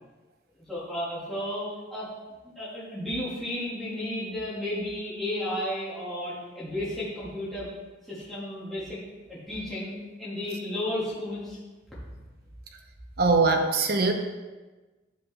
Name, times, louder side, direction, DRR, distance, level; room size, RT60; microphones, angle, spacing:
voice 1, 0.6-2.1 2.4-7.7 8.0-9.0 9.3-11.6, left 1 dB, ahead, -11 dB, 2.3 m, -33 dB
voice 2, 13.2-14.1, right 3 dB, 50° right, 5 dB, 0.8 m, -21 dB
10.0 x 5.3 x 3.5 m, 1.2 s
head